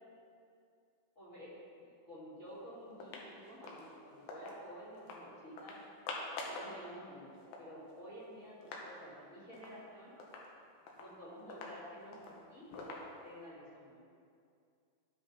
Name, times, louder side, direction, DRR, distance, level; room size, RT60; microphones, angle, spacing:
voice 1, 1.2-5.9 6.4-10.1 11.0-12.9 13.2-14.0, equal, 25° left, -10 dB, 2.4 m, -51 dB
sound 1, 2.5-2.6 2.9-4.6 5.0-5.2 5.6-6.7 7.1-7.2 7.3-8.9 9.2-9.3 9.5-9.8 10.2-13.5, left 3 dB, 85° left, 2.8 m, -47 dB
14.5 x 5.4 x 3.5 m, 2.3 s
omnidirectional pair, 4.1 m